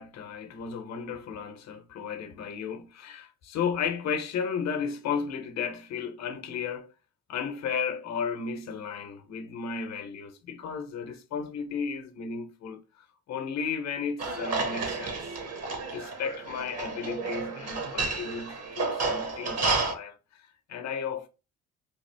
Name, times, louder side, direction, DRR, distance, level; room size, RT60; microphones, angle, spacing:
voice 1, 0.0-6.9 7.3-15.2 15.9-21.3, left 6 dB, 60° left, 0.8 m, -34 dB
sound 1, 14.2-19.9, right 3 dB, 55° right, 1.1 m, -31 dB
3.4 x 2.4 x 3.3 m
cardioid pair, 90°, 30 cm